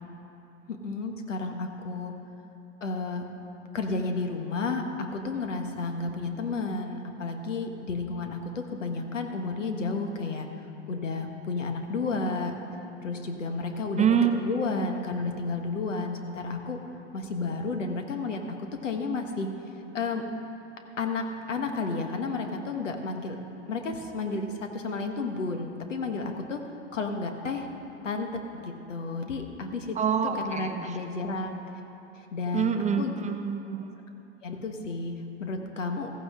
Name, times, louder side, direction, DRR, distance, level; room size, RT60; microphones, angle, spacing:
voice 1, 0.7-2.1 2.8-3.2 3.7-10.5 10.9-12.5 13.0-14.2 14.4-16.8 17.1-18.6 18.8-19.5 19.9-20.2 21.0-23.3 23.7-26.6 26.9-27.7 28.0-28.3 28.6-30.0 30.3-31.5 32.1-33.1 34.4-36.1, left 3 dB, 85° left, 4 dB, 1.5 m, -32 dB
voice 2, 14.0-14.3 29.9-31.0 32.5-34.0, right 8 dB, 20° right, 7 dB, 0.7 m, -26 dB
14.5 x 14.5 x 3.7 m, 3.0 s
hypercardioid pair, 100°, 36 cm